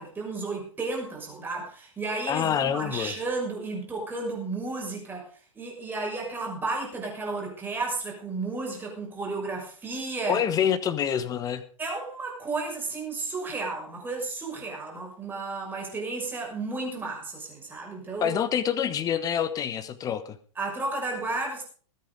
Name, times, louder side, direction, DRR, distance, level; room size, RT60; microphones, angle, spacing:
voice 1, 0.0-5.3 5.5-10.4 11.8-18.4 20.6-21.6, right 3 dB, 10° right, -1 dB, 6.3 m, -33 dB
voice 2, 2.3-3.1 10.2-11.6 18.2-20.4, left 9 dB, 20° left, 14 dB, 1.3 m, -26 dB
20.0 x 9.0 x 5.1 m, 0.42 s
figure-of-eight pair, 100°, 17 cm